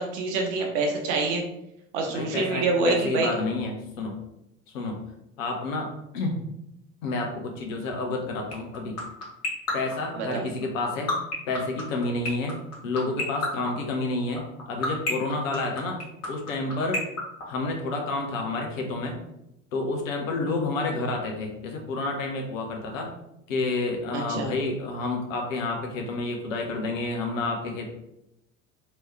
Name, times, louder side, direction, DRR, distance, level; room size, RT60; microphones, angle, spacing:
voice 1, 0.0-1.4 1.9-3.3 10.1-10.5 24.1-24.5, right 3 dB, 60° right, 1 dB, 0.8 m, -26 dB
voice 2, 2.1-4.2 4.7-5.0 5.4-5.9 6.1-6.4 7.0-9.0 9.7-11.1 11.5-12.6 12.8-16.0 16.3-17.0 17.5-19.2 19.7-23.1 23.5-27.9, left 2 dB, 70° left, 2 dB, 0.8 m, -29 dB
sound 1, 8.5-18.1, left 3 dB, 40° left, 1.2 m, -28 dB
3.1 x 2.9 x 3.2 m, 0.82 s
figure-of-eight pair, 65°, 41 cm